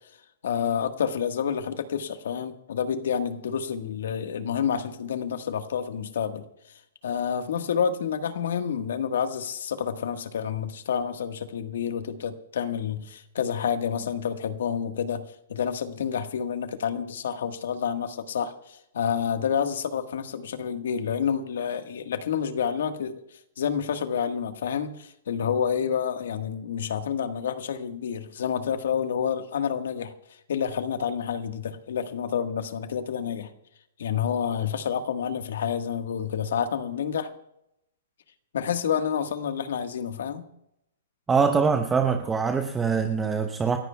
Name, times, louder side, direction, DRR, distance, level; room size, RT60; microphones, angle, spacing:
voice 1, 0.4-23.2 23.6-30.1 30.5-33.5 34.0-37.3 38.5-40.4, left 7 dB, 70° left, 7 dB, 1.5 m, -29 dB
voice 2, 41.3-43.8, right 5 dB, 10° right, 5 dB, 0.8 m, -23 dB
29.0 x 15.0 x 2.3 m, 0.82 s
hypercardioid pair, 155°, 0 cm